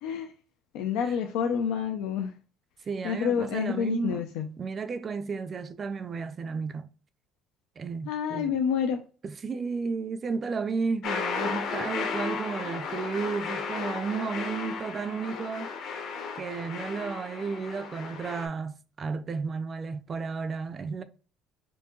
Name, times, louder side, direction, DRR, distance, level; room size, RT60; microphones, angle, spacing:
voice 1, 0.7-2.3 3.0-4.5 8.1-9.0, left 7 dB, 85° left, 0.5 m, -28 dB
voice 2, 2.9-4.3 4.6-6.9 7.8-8.6 9.2-15.7 16.3-21.0, right 5 dB, 25° right, 0.4 m, -33 dB
sound 1, 11.0-18.5, left 5 dB, 55° left, 1.0 m, -34 dB
4.4 x 2.6 x 3.0 m
cardioid pair, 165°, 0 cm